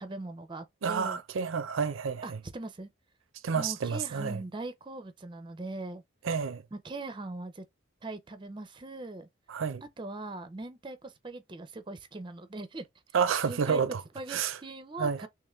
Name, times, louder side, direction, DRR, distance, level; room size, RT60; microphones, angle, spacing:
voice 1, 0.0-1.2 2.2-2.9 3.5-6.0 6.7-7.6 8.0-9.3 10.0-12.8 13.5-13.8 14.1-15.3, right 2 dB, 25° right, 0.5 m, -40 dB
voice 2, 0.8-2.4 3.4-4.4 6.2-6.6 9.5-9.8 13.1-14.0 14.3-14.6 15.0-15.3, right 6 dB, 85° right, 0.5 m, -29 dB
3.6 x 2.9 x 3.1 m
head